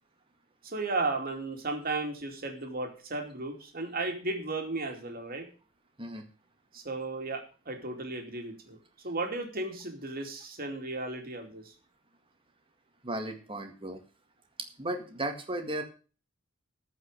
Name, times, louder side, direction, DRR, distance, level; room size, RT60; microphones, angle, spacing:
voice 1, 0.6-5.5 6.7-8.8 9.0-11.7, right 3 dB, 50° right, 3 dB, 2.7 m, -35 dB
voice 2, 13.0-14.0 14.8-15.8, right 1 dB, 25° right, 5 dB, 1.9 m, -35 dB
14.0 x 5.7 x 6.7 m, 0.36 s
head